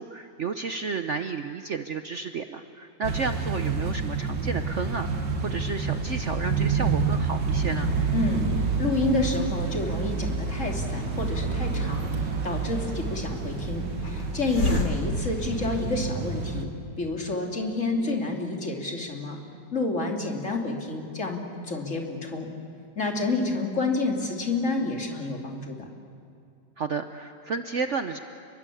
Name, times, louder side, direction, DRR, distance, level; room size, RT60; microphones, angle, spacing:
voice 1, 0.0-7.9 14.6-14.8 24.6-24.9 26.8-28.2, right 5 dB, 55° right, 8 dB, 0.9 m, -32 dB
sound 1, 3.0-16.6, right 4 dB, 85° right, 2.5 m, -28 dB
voice 2, 8.1-16.7 17.0-19.4 19.7-21.4 21.7-22.5 22.9-25.9, left 3 dB, 45° left, 1 dB, 3.3 m, -29 dB
Hiss, 10.7-16.2, left 2 dB, 70° left, 3.9 m, -34 dB
29.5 x 22.0 x 8.5 m, 2.5 s
omnidirectional pair, 1.9 m